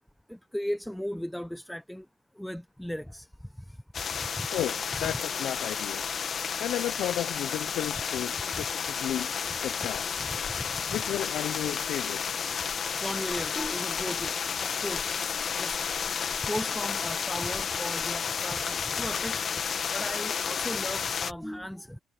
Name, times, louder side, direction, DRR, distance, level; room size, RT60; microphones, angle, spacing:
voice 1, 0.3-2.1 2.3-4.5 4.9-5.2 6.1-6.6 8.5-8.6 10.3-11.0 12.9-14.3 14.6-15.1 15.4-15.8 16.3-19.4 19.9-22.0, equal, 5° left, 0.9 m, -37 dB
sound 1, 3.9-21.3, left 7 dB, 50° left, 1.8 m, -31 dB
voice 2, 4.5-6.0 6.6-9.3 9.6-10.1 10.9-12.5, left 12 dB, 80° left, 0.7 m, -33 dB
cardioid pair, 90°, 0 cm